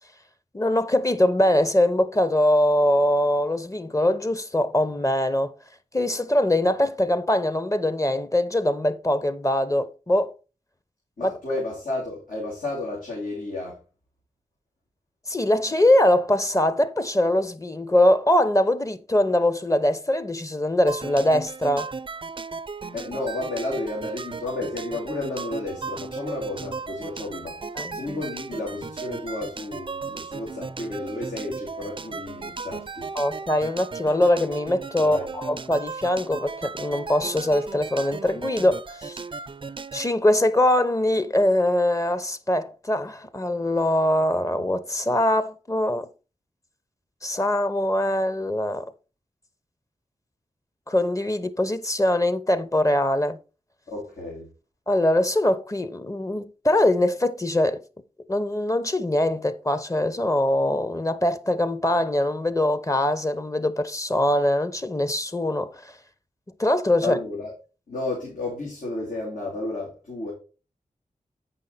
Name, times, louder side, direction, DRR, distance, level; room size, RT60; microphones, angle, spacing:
voice 1, 0.5-5.5 5.9-10.3 11.2-11.3 15.3-21.9 27.7-28.0 33.1-39.2 39.9-46.1 47.2-48.9 50.9-53.4 54.9-57.8 58.3-66.0 66.6-67.2, left 1 dB, 25° left, 0.8 m, -22 dB
voice 2, 11.2-13.8 22.9-27.6 27.9-33.1 35.0-35.3 53.9-54.5 67.0-67.5 67.9-70.3, left 2 dB, 80° left, 3.0 m, -32 dB
sound 1, 20.9-40.1, right 4 dB, 40° right, 0.5 m, -36 dB
8.4 x 5.7 x 4.0 m
cardioid pair, 50°, 14 cm